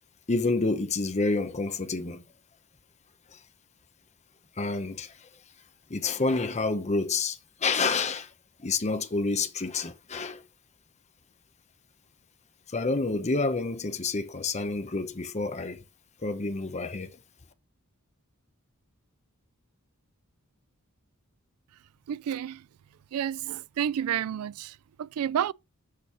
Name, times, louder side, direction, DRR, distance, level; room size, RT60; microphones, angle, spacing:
voice 1, 0.3-2.2 3.3-3.4 4.6-5.3 5.9-8.3 8.6-10.4 12.7-15.8 16.2-17.2, left 3 dB, 30° left, 0.8 m, -29 dB
voice 2, 22.1-22.6 23.1-25.5, right 9 dB, 85° right, 0.3 m, -30 dB
6.7 x 5.3 x 6.1 m
head